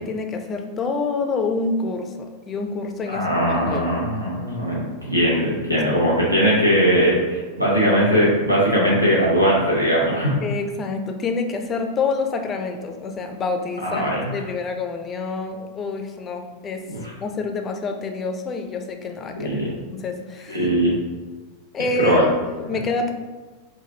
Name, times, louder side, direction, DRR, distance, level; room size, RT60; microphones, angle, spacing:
voice 1, 0.0-3.3 3.6-3.9 10.4-16.9 17.2-19.6 19.9-20.7 21.7-23.1, left 3 dB, 25° left, 5 dB, 0.4 m, -27 dB
voice 2, 3.1-10.4 13.8-14.3 16.9-17.0 19.4-19.8 20.5-20.9 22.0-22.3, equal, 85° right, -5 dB, 0.8 m, -20 dB
4.8 x 2.2 x 3.3 m, 1.3 s
figure-of-eight pair, 90°, 0 cm